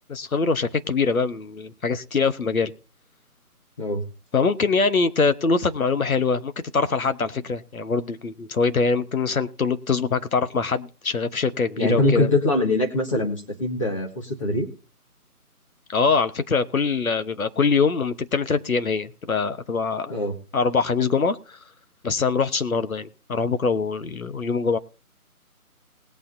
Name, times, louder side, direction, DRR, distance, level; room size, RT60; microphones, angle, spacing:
voice 1, 0.1-2.7 4.3-12.3 15.9-20.1 20.5-21.6 22.0-24.8, left 4 dB, 65° left, 1.1 m, -23 dB
voice 2, 11.8-14.7 20.1-20.4, left 2 dB, 20° left, 1.7 m, -23 dB
20.0 x 8.6 x 2.7 m
figure-of-eight pair, 165°, 45 cm